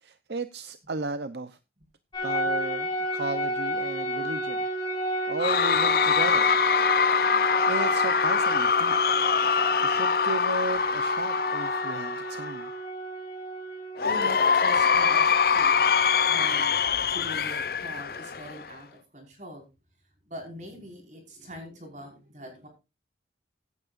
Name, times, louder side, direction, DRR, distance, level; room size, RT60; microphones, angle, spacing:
voice 1, 0.0-1.6 2.2-4.7 5.3-6.6 7.7-9.0 9.8-12.7, right 3 dB, 70° right, 0.7 m, -35 dB
sound 1, 2.1-16.6, right 1 dB, 25° left, 3.2 m, -32 dB
Cheering / Crowd, 5.4-12.7 14.0-18.7, left 6 dB, 55° left, 0.6 m, -24 dB
voice 2, 14.0-15.9 16.3-19.7 20.2-22.7, equal, 40° right, 5.1 m, -43 dB
16.5 x 9.5 x 2.5 m
head